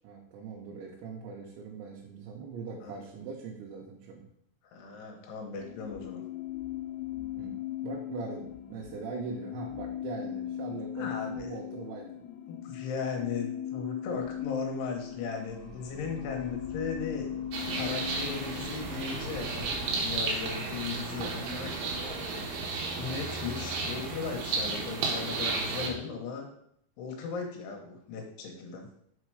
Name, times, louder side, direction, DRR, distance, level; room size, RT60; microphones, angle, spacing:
voice 1, 0.0-4.3 7.4-7.5 7.8-12.1, right 5 dB, 85° right, -3 dB, 3.2 m, -41 dB
voice 2, 4.7-6.2 11.0-11.5 12.5-17.3 17.7-22.6 23.0-26.5 27.0-28.9, left 5 dB, 75° left, 2 dB, 3.1 m, -37 dB
sound 1, 5.6-19.3, left 10 dB, 90° left, 3.0 m, -38 dB
Animal, 14.2-22.7, equal, 20° left, 2.9 m, -49 dB
sound 2, 17.5-25.9, right 4 dB, 70° right, 2.7 m, -33 dB
6.7 x 4.4 x 4.8 m, 0.70 s
omnidirectional pair, 5.1 m